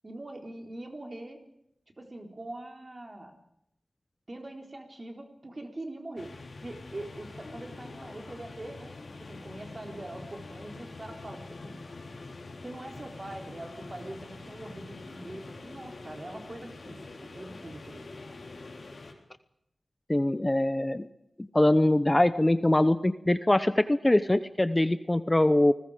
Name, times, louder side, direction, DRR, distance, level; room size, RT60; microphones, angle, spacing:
voice 1, 0.0-1.4 2.0-3.4 4.3-6.3 6.6-11.8 12.6-18.0, right 1 dB, 35° right, 3 dB, 4.2 m, -43 dB
sound 1, 6.2-19.1, left 3 dB, 65° left, 3.9 m, -45 dB
voice 2, 20.1-21.1 21.5-25.7, left 1 dB, 20° left, 13 dB, 0.8 m, -23 dB
29.0 x 20.0 x 5.1 m, 0.76 s
wide cardioid pair, 70°, 0 cm